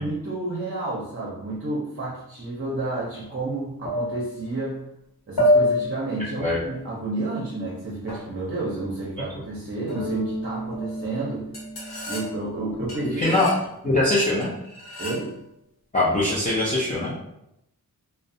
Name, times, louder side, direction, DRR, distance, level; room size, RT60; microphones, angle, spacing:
voice 1, 0.0-4.9 5.3-11.5 12.1-13.4 13.8-14.0 15.0-15.4, right 2 dB, 35° right, -5 dB, 0.6 m, -30 dB
sound 1, 2.7-2.8 3.8-4.5 5.4-6.2 8.1-8.3 9.9-10.4 10.7-11.0 11.5-12.6 12.9-13.6 14.4-15.3, left 1 dB, 90° left, 1.0 m, -27 dB
Bass guitar, 10.0-13.1, right 2 dB, 60° left, 0.9 m, -35 dB
voice 2, 13.2-13.5 13.8-14.5 15.9-17.1, left 2 dB, 20° left, -8 dB, 0.5 m, -22 dB
2.4 x 2.0 x 2.6 m, 0.82 s
wide cardioid pair, 100°, 37 cm